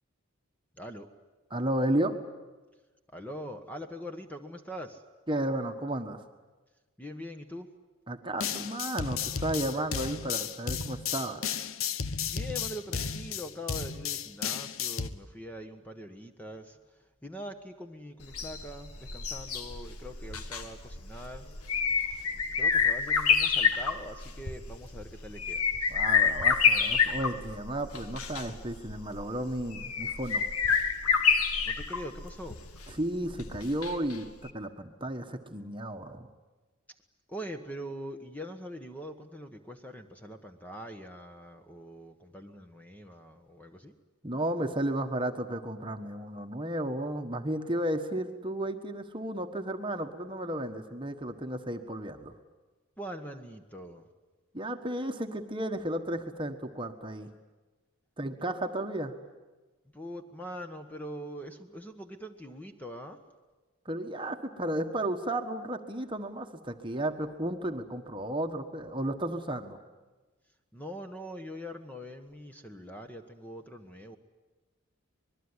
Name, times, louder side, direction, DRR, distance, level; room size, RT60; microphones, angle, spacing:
voice 1, 0.8-1.1 3.1-5.0 7.0-7.7 12.3-16.6 17.2-21.4 22.6-25.9 31.6-32.6 37.3-43.9 53.0-54.0 59.9-63.2 70.7-74.2, equal, 5° left, 6 dB, 1.3 m, -43 dB
voice 2, 1.5-2.1 5.3-6.2 8.1-11.4 25.9-30.5 32.9-34.3 34.5-36.3 44.2-52.3 54.5-57.3 58.2-59.1 63.8-69.8, right 1 dB, 20° right, 6 dB, 1.4 m, -33 dB
sound 1, 8.4-15.1, left 7 dB, 65° left, 1.0 m, -33 dB
sound 2, 18.2-34.2 34.5-34.6, left 6 dB, 85° left, 2.0 m, -28 dB
25.0 x 21.5 x 9.8 m, 1.2 s
head